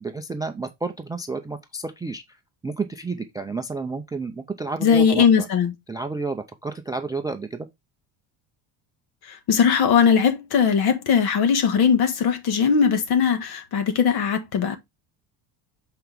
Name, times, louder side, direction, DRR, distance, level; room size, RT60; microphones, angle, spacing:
voice 1, 0.0-2.4 2.6-5.5 5.9-7.7, right 3 dB, 10° right, 0.4 m, -31 dB
voice 2, 4.8-5.7 9.2-14.8, left 7 dB, 50° left, 1.5 m, -19 dB
7.8 x 4.5 x 3.4 m
cardioid pair, 145°, 48 cm